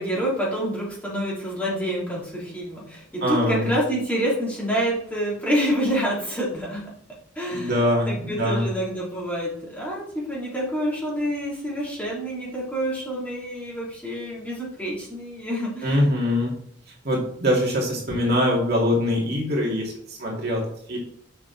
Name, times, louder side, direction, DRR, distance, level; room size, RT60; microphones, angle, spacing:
voice 1, 0.0-6.9 7.3-15.9, equal, 10° left, -6 dB, 3.0 m, -27 dB
voice 2, 3.2-3.7 7.5-8.7 15.8-16.5 17.0-20.6 20.9-21.0, left 1 dB, 55° right, -2 dB, 2.3 m, -23 dB
6.9 x 6.4 x 4.0 m, 0.65 s
head